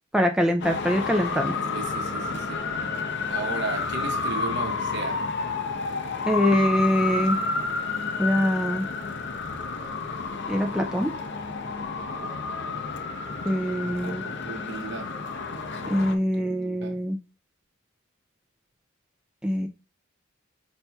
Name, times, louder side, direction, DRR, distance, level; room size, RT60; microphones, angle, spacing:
voice 1, 0.1-1.6 6.3-7.4 8.2-8.9 10.5-11.1 13.4-14.3 15.9-17.2 19.4-19.7, equal, 5° right, 0.3 m, -24 dB
Traffic noise roadway noise, 0.6-16.1, left 4 dB, 55° left, 0.6 m, -30 dB
voice 2, 1.7-2.6 3.3-5.2 11.9-12.4 13.8-15.1 15.8-16.1 16.3-17.0, right 4 dB, 55° right, 0.8 m, -36 dB
5.5 x 4.3 x 2.2 m
head